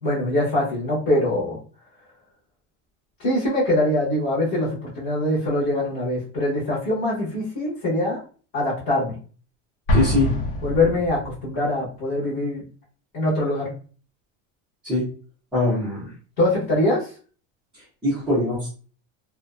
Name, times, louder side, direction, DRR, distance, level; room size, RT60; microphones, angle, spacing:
voice 1, 0.0-1.6 3.2-8.2 8.5-9.2 10.6-12.6 13.1-13.7 16.4-17.1, left 1 dB, 25° left, -8 dB, 0.9 m, -23 dB
Explosion, 9.9-11.6, left 1 dB, 60° left, 0.7 m, -24 dB
voice 2, 9.9-10.3 14.8-15.0 15.5-16.1 18.0-18.7, left 2 dB, 5° right, -12 dB, 0.5 m, -22 dB
2.5 x 2.1 x 2.3 m, 0.40 s
supercardioid pair, 180°, 38 cm